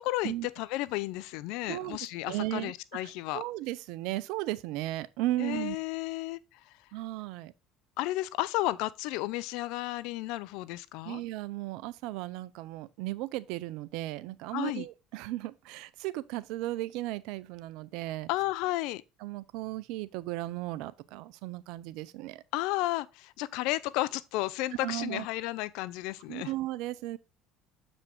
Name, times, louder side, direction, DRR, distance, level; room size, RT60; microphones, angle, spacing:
voice 1, 0.0-3.4 5.4-6.7 8.0-11.2 14.5-14.9 18.3-19.0 22.5-26.5, left 17 dB, 70° left, 0.5 m, -33 dB
voice 2, 2.2-2.7 3.0-5.8 6.9-7.5 11.0-18.3 19.2-22.4 24.8-25.3 26.3-27.2, right 16 dB, 70° right, 0.6 m, -35 dB
7.4 x 5.1 x 3.7 m
supercardioid pair, 80°, 0 cm